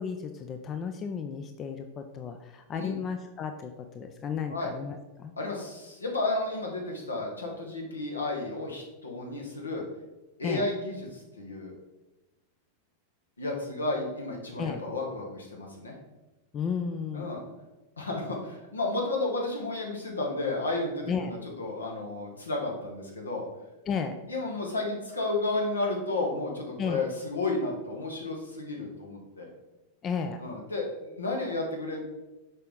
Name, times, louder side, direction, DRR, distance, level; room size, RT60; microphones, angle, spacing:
voice 1, 0.0-5.3 10.4-10.7 14.6-14.8 16.5-17.3 21.1-21.3 23.9-24.2 26.8-27.0 30.0-30.4, left 6 dB, 30° left, 7 dB, 0.4 m, -33 dB
voice 2, 5.4-9.8 10.4-11.8 13.4-15.9 17.1-17.4 18.0-23.4 24.3-29.5 30.4-32.0, left 2 dB, 75° left, 0 dB, 1.4 m, -32 dB
6.6 x 4.6 x 3.6 m, 1.0 s
figure-of-eight pair, 90°, 0 cm